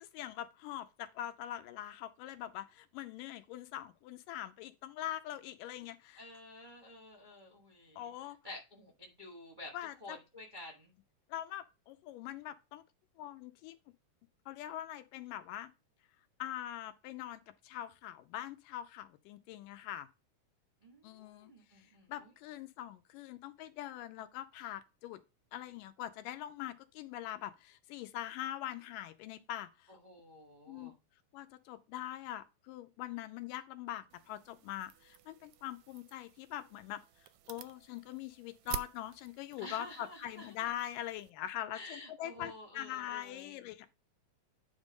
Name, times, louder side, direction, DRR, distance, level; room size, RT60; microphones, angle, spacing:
voice 1, 0.0-6.2 8.0-8.4 9.7-10.2 11.3-12.8 13.2-13.8 14.5-15.7 16.4-20.1 21.0-21.5 22.1-25.2 25.5-29.9 30.7-30.9 31.3-37.0 37.5-43.9, left 12 dB, 85° left, 2.3 m, -43 dB
voice 2, 6.2-8.1 8.4-9.7 10.0-10.9 20.8-22.3 29.9-30.9 39.6-40.5 41.7-43.5, left 1 dB, 40° right, 0.6 m, -50 dB
sound 1, 34.1-41.3, right 12 dB, 80° right, 1.7 m, -49 dB
9.6 x 3.7 x 5.2 m
omnidirectional pair, 3.9 m